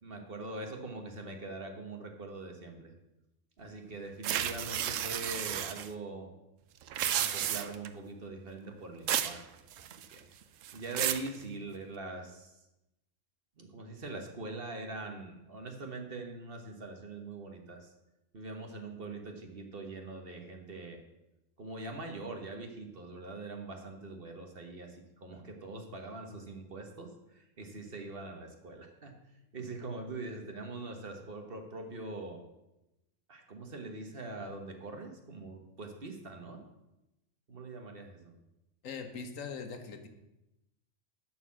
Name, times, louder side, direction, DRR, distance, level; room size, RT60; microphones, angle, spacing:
voice 1, 0.0-2.9 3.6-6.3 7.2-10.3 10.7-12.7 13.6-17.9 18.3-21.0 21.6-29.2 29.5-32.4 33.3-36.6 37.5-38.3, right 2 dB, 45° right, 4 dB, 1.4 m, -43 dB
sound 1, 4.2-5.9 6.8-7.9 9.1-9.4 9.7-10.2 10.6-11.3, right 10 dB, 75° right, 1.0 m, -32 dB
voice 2, 38.8-40.1, left 5 dB, 80° left, 7 dB, 1.4 m, -41 dB
11.0 x 4.5 x 7.4 m, 0.93 s
omnidirectional pair, 1.3 m